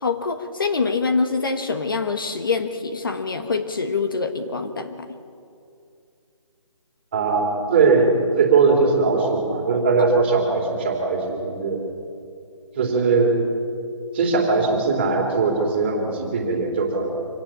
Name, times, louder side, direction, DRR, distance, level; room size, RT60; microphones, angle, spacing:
voice 1, 0.0-5.2, left 4 dB, 40° left, 7 dB, 1.3 m, -25 dB
voice 2, 7.1-11.8 12.8-13.3 14.1-17.1, right 4 dB, 20° right, 1 dB, 2.9 m, -20 dB
25.0 x 17.5 x 8.9 m, 2.5 s
hypercardioid pair, 175°, 17 cm